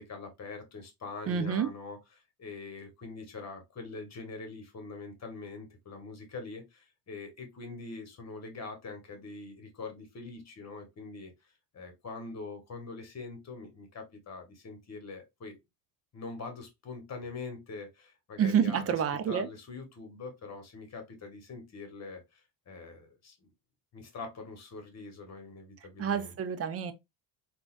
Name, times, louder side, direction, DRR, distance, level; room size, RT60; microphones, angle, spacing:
voice 1, 0.0-2.0 2.4-15.6 16.1-18.9 19.3-23.4 23.9-26.3, left 3 dB, 35° left, 1.3 m, -43 dB
voice 2, 1.3-1.7 18.4-19.5 26.0-26.9, right 7 dB, 35° right, 0.5 m, -28 dB
3.8 x 2.4 x 2.4 m
supercardioid pair, 95°, 45 cm